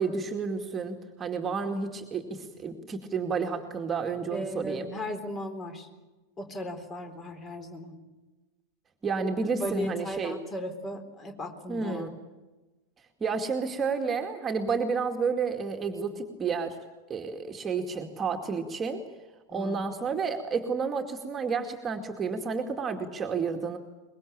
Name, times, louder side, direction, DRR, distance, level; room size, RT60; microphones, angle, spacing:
voice 1, 0.0-4.9 9.0-10.4 11.7-12.1 13.2-16.8 17.1-19.0 19.5-23.8, right 5 dB, 20° right, 4 dB, 2.2 m, -31 dB
voice 2, 4.3-5.9 6.4-8.0 9.6-12.1 19.5-19.8, left 1 dB, 20° left, 7 dB, 4.1 m, -36 dB
23.5 x 22.0 x 8.8 m, 1.2 s
figure-of-eight pair, 90°, 0 cm